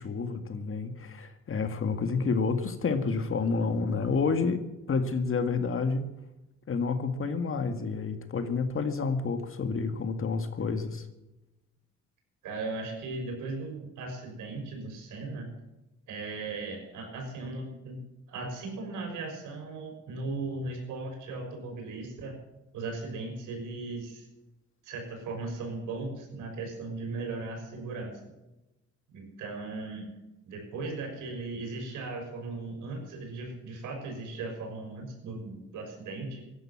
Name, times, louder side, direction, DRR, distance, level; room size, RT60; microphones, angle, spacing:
voice 1, 0.0-4.6 4.9-6.1 6.7-11.1, left 4 dB, 45° left, 8 dB, 2.0 m, -29 dB
voice 2, 12.4-15.5 16.1-18.0 18.3-22.4 22.7-24.3 24.8-28.2 29.1-30.1 30.5-36.4, right 3 dB, 90° right, 2 dB, 6.3 m, -37 dB
16.5 x 11.5 x 7.3 m, 0.96 s
cardioid pair, 90°, 30 cm